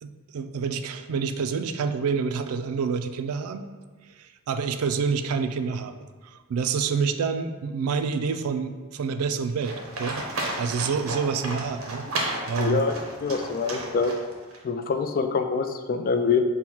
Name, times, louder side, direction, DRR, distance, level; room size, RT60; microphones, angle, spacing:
voice 1, 0.0-3.6 4.2-10.2 10.6-12.1 12.5-12.8, right 5 dB, 85° right, 8 dB, 0.3 m, -28 dB
Livestock farm animals working animals, 9.6-14.6, right 2 dB, 70° right, 0.8 m, -33 dB
voice 2, 12.6-14.1 14.6-16.4, left 5 dB, 40° left, 7 dB, 0.3 m, -25 dB
5.6 x 2.1 x 4.5 m, 1.3 s
head